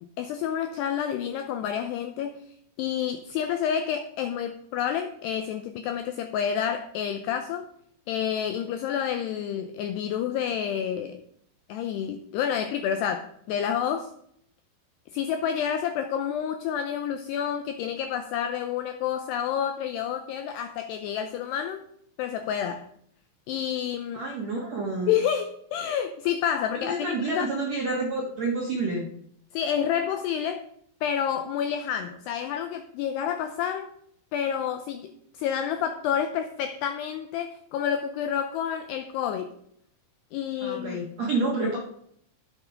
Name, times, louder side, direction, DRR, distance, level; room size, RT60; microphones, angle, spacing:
voice 1, 0.2-2.4 2.8-7.7 8.1-11.2 11.7-14.1 15.1-21.8 22.2-22.9 23.5-24.2 25.1-27.5 29.5-30.6 31.0-33.9 34.3-39.5 40.3-41.0, left 8 dB, 85° left, 8 dB, 2.4 m, -29 dB
voice 2, 24.1-25.1 26.7-29.1 40.6-41.8, right 2 dB, 65° right, -1 dB, 1.6 m, -29 dB
11.5 x 8.5 x 5.2 m, 0.69 s
omnidirectional pair, 5.6 m